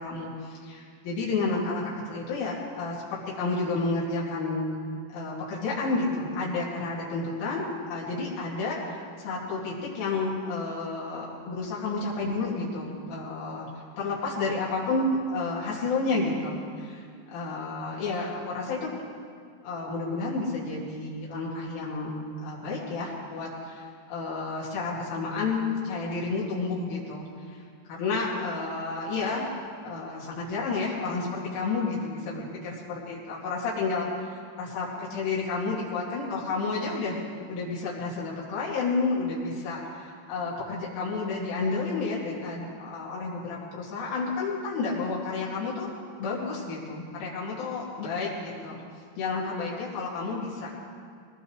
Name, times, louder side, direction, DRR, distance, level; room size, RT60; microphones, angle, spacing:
voice 1, 0.0-4.8 5.1-13.7 14.0-17.1 17.3-19.0 19.6-27.6 27.9-29.5 29.8-37.2 37.5-45.9 46.2-48.8 49.2-50.7, left 3 dB, 80° left, -6 dB, 4.9 m, -31 dB
22.0 x 19.0 x 3.2 m, 2.1 s
omnidirectional pair, 5.6 m